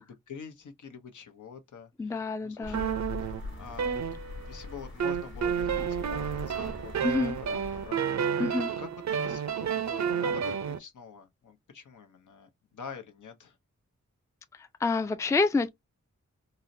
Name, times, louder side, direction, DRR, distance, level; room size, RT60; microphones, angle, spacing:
voice 1, 0.0-4.0 4.5-8.2 8.8-13.6, left 6 dB, 75° left, 0.8 m, -46 dB
voice 2, 2.0-2.9 7.0-7.4 8.4-8.7 14.6-15.7, left 3 dB, 10° left, 0.3 m, -28 dB
sound 1, 2.6-7.9, left 3 dB, 40° left, 1.0 m, -42 dB
sound 2, 2.7-4.6 5.0-10.8, right 8 dB, 65° right, 0.5 m, -30 dB
3.8 x 2.0 x 2.6 m
cardioid pair, 65°, 30 cm